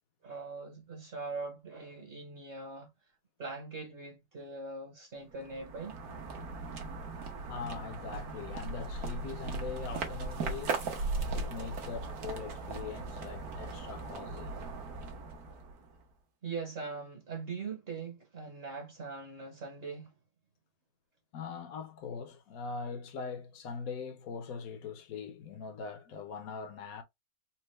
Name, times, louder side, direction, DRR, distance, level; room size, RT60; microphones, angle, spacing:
voice 1, 0.2-2.9 3.4-6.0 16.4-20.1, right 4 dB, 40° right, 1.1 m, -41 dB
sound 1, 5.3-16.0, right 3 dB, 65° right, 1.4 m, -38 dB
voice 2, 7.5-10.8 11.3-14.5 21.3-27.0, left 5 dB, 65° left, 1.1 m, -41 dB
4.4 x 2.1 x 3.0 m
omnidirectional pair, 1.8 m